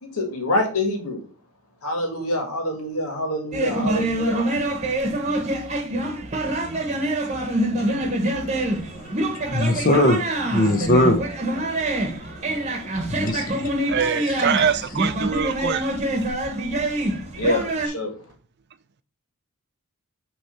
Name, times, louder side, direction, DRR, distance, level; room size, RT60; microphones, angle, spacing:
voice 1, 0.0-1.2 1.8-4.5 16.8-16.9 17.3-18.2, left 1 dB, 80° left, 1.9 m, -26 dB
sound 1, 3.5-17.9, right 1 dB, 30° right, 1.1 m, -25 dB
voice 2, 7.8-12.0 12.3-14.4, left 1 dB, 40° left, 0.9 m, -24 dB
voice 3, 13.9-15.9, right 7 dB, 50° right, 0.4 m, -23 dB
6.2 x 3.2 x 5.6 m
head